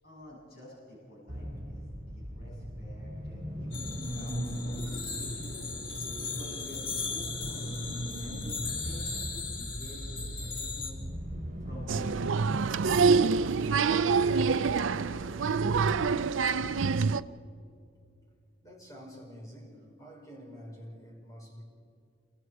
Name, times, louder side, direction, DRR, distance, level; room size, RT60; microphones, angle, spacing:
voice 1, 0.0-5.7 6.2-11.0 11.6-15.6 16.0-16.5, left 1 dB, 55° left, -5 dB, 7.6 m, -50 dB
sound 1, 1.3-12.0, equal, 40° right, 4.5 m, -38 dB
sound 2, 3.7-10.9, left 5 dB, 85° left, 3.2 m, -38 dB
voice 2, 4.7-5.0 5.3-5.4 6.0-6.2 16.4-16.9 18.6-21.6, equal, 20° left, -1 dB, 5.0 m, -48 dB
Applause, 11.9-17.2, right 5 dB, 90° right, 0.5 m, -26 dB
28.0 x 24.0 x 4.8 m, 2.4 s
head